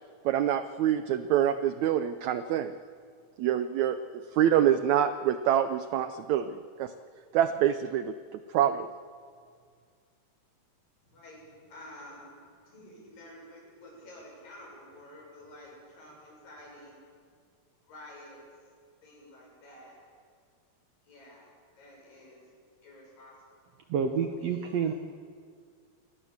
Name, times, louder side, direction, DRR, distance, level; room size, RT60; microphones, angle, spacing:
voice 1, 0.2-2.7 3.4-4.0 4.3-6.9 7.3-8.1 8.5-8.9, right 10 dB, 90° right, 11 dB, 1.6 m, -26 dB
voice 2, 11.0-17.1 17.8-18.4 19.0-20.0 21.0-21.5 21.8-22.5 22.8-23.3 24.4-25.0, left 1 dB, 70° left, -2 dB, 8.8 m, -50 dB
voice 3, 23.9-24.9, right 6 dB, 65° right, 5 dB, 1.7 m, -28 dB
27.5 x 19.0 x 7.3 m, 2.1 s
omnidirectional pair, 4.1 m